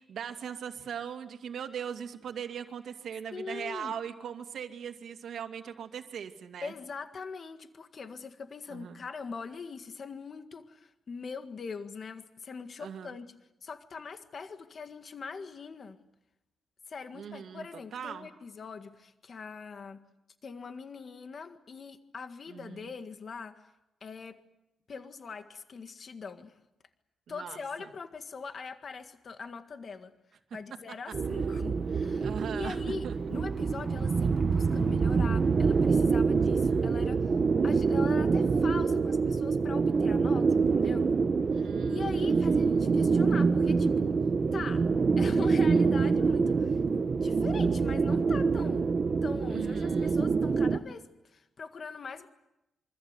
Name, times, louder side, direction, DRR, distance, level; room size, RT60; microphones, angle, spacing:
voice 1, 0.0-6.7 8.7-9.0 12.8-13.2 17.1-17.7 17.9-18.3 22.5-22.9 27.3-27.9 32.2-33.2 36.6-36.9 41.5-42.7 49.5-50.2, right 8 dB, 60° right, 6 dB, 2.5 m, -40 dB
voice 2, 3.3-3.9 6.6-13.3 13.6-16.0 16.9-20.0 20.4-23.6 24.0-24.4 24.9-26.5 27.3-30.1 30.5-37.3 37.6-41.2 41.9-44.2 44.5-44.8 45.2-48.9 49.2-52.3, left 5 dB, 40° left, 8 dB, 1.7 m, -42 dB
sound 1, 31.1-50.8, right 4 dB, 35° right, 1.1 m, -26 dB
27.0 x 25.0 x 8.2 m, 0.89 s
wide cardioid pair, 160°, 0 cm